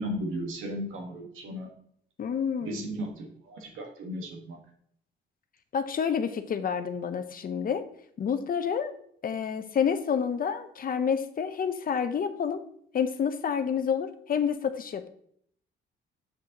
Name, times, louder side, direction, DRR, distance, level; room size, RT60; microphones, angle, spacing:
voice 1, 0.0-1.7 2.6-4.6, equal, 90° right, 2 dB, 1.5 m, -35 dB
voice 2, 2.2-2.9 5.7-7.8 8.2-9.0 9.2-12.6 12.9-15.1, left 7 dB, 45° left, 10 dB, 0.7 m, -29 dB
7.6 x 6.1 x 2.9 m, 0.66 s
cardioid pair, 90°, 20 cm